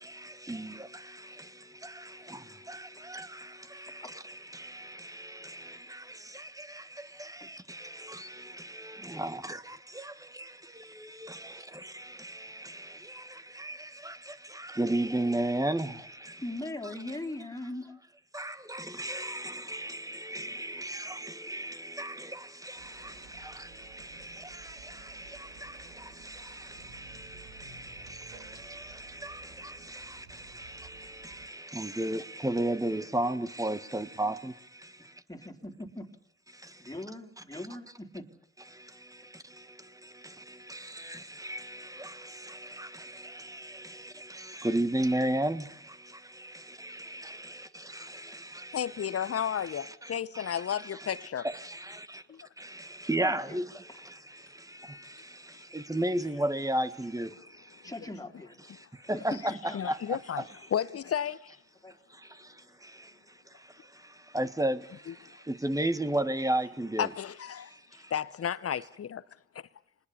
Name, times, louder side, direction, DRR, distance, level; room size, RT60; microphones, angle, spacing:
voice 1, 0.0-17.2 18.3-35.2 36.5-37.0 37.4-37.7 38.6-52.2 52.6-58.0 58.6-60.7 61.2-61.4 62.1-63.1 63.5-68.2 68.7-68.9, right 1 dB, 10° right, 1.6 m, -36 dB
voice 2, 16.4-17.9 20.8-21.0 23.2-23.5 35.3-36.1 36.8-38.2 53.2-53.6 57.8-58.6 59.1-59.4 59.6-59.8 61.8-62.0, left 1 dB, 10° left, 3.3 m, -40 dB
sound 1, 22.8-31.5, right 5 dB, 80° right, 2.3 m, -54 dB
voice 3, 48.7-51.5 52.3-52.4 59.7-61.6 65.1-65.2 67.0-67.7 68.1-69.2, left 9 dB, 45° left, 1.1 m, -32 dB
26.5 x 20.5 x 7.0 m
hypercardioid pair, 45°, 33 cm